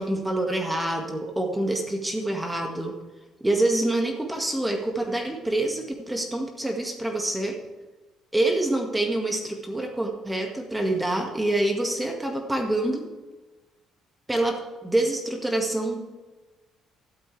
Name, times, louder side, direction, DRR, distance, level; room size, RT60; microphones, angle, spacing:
voice 1, 0.0-3.0 3.4-7.6 8.3-13.1 14.3-16.0, right 1 dB, 10° right, 2 dB, 1.9 m, -26 dB
13.0 x 12.0 x 3.4 m, 1.2 s
cardioid pair, 95°, 0 cm